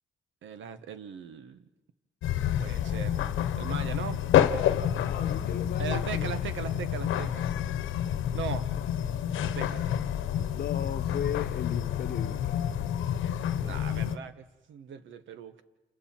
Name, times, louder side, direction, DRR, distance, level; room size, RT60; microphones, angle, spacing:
voice 1, 0.4-1.7 2.4-3.2 3.6-4.2 5.8-7.5 8.3-8.7 9.5-9.8 13.6-15.6, right 7 dB, 75° right, 11 dB, 1.4 m, -39 dB
sound 1, 2.2-14.2, left 10 dB, 85° left, 1.1 m, -29 dB
voice 2, 4.9-6.3 10.5-12.7, left 9 dB, 55° left, 10 dB, 1.0 m, -36 dB
29.0 x 28.5 x 4.5 m, 1.1 s
cardioid pair, 90°, 20 cm